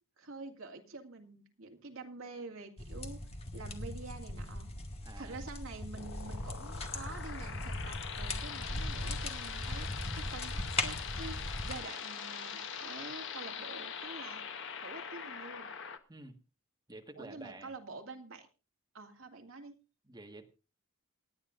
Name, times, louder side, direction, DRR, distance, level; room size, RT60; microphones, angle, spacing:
voice 1, 0.2-3.2 3.5-4.7 5.2-11.4 11.6-14.5 14.8-15.7 17.2-18.5 18.9-19.7, right 3 dB, 70° right, 4 dB, 2.3 m, -47 dB
sound 1, 2.8-11.8, left 2 dB, 30° left, 1.8 m, -39 dB
voice 2, 5.0-5.4 16.1-16.4 16.9-17.7 20.0-20.5, right 2 dB, 20° right, 3 dB, 1.6 m, -50 dB
sound 2, 5.9-16.0, left 7 dB, 60° left, 1.1 m, -43 dB
28.0 x 9.7 x 2.6 m, 0.31 s
head